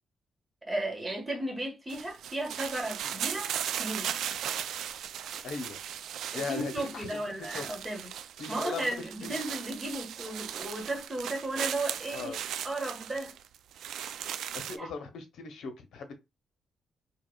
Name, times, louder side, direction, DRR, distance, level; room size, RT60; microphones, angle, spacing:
voice 1, 0.7-3.5 3.8-4.1 6.5-8.1 8.5-12.3 12.6-13.3 14.8-14.9, right 1 dB, 15° right, 1.5 m, -34 dB
sound 1, 1.9-14.8, right 9 dB, 85° right, 0.3 m, -37 dB
voice 2, 5.4-5.8 6.3-7.2 7.5-7.6 8.4-9.4 12.1-12.4 14.7-16.2, left 4 dB, 85° left, 0.8 m, -39 dB
4.7 x 2.8 x 2.3 m
cardioid pair, 105°, 0 cm